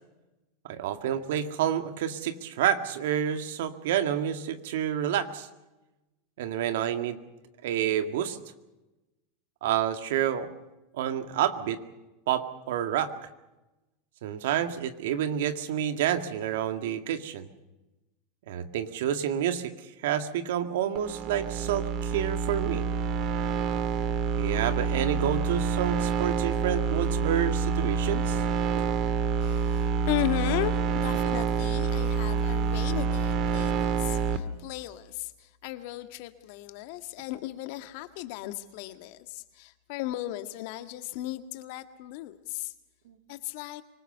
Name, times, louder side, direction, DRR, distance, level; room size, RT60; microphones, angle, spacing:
voice 1, 0.6-5.5 6.4-7.2 7.6-8.4 9.6-10.5 10.9-11.8 12.3-13.1 14.2-17.5 18.5-22.8 24.4-28.4 43.1-43.2, right 10 dB, 75° right, 9 dB, 1.9 m, -29 dB
sound 1, 21.0-34.4, right 5 dB, 45° right, 2.0 m, -27 dB
voice 2, 29.4-42.7 43.3-43.8, left 15 dB, 65° left, 9 dB, 1.7 m, -36 dB
24.5 x 20.0 x 6.8 m, 1.0 s
hypercardioid pair, 105°, 0 cm